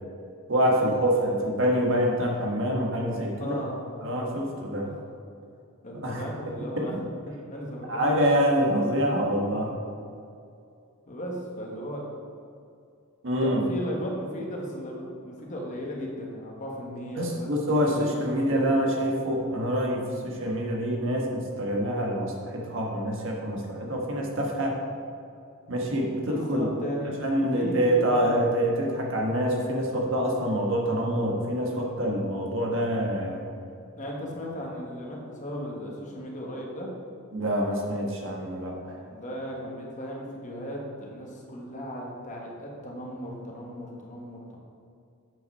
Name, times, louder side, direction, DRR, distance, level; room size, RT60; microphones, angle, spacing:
voice 1, 0.5-3.6 4.0-4.9 6.0-6.2 6.7-7.0 7.9-9.7 13.2-13.6 17.2-24.8 25.7-26.6 27.2-33.4 37.3-39.0, equal, 60° right, -1 dB, 1.4 m, -26 dB
voice 2, 3.4-3.8 4.8-5.0 5.8-8.0 9.1-9.2 11.1-12.1 13.4-18.7 26.3-27.2 27.5-28.4 33.9-36.9 39.1-44.6, equal, 35° left, -2 dB, 1.4 m, -36 dB
7.7 x 5.7 x 5.4 m, 2.5 s
head